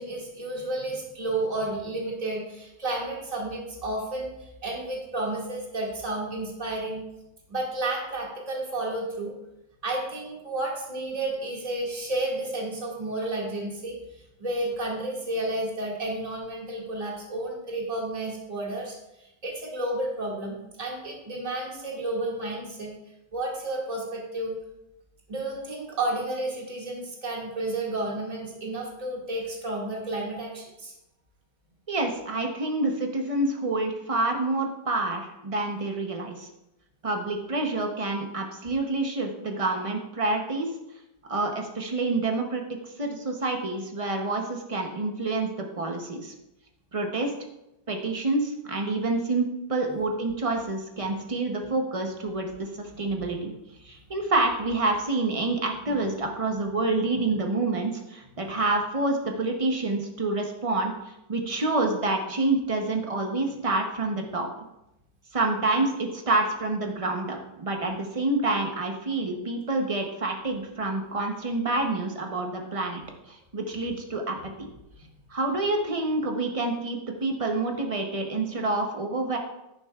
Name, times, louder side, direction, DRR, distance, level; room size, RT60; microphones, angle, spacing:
voice 1, 0.0-7.0 7.5-9.3 9.8-14.0 14.4-22.9 23.3-24.6 25.3-30.9 49.9-50.0 53.2-53.3 55.9-56.1, right 2 dB, 20° right, -3 dB, 2.0 m, -31 dB
voice 2, 31.9-36.5 37.0-40.7 41.3-42.6 43.0-45.5 45.8-46.3 46.9-47.3 47.9-53.5 53.8-64.5 65.3-74.7 75.3-79.4, right 2 dB, 55° right, 2 dB, 0.3 m, -28 dB
10.5 x 9.9 x 2.4 m, 0.90 s
omnidirectional pair, 2.0 m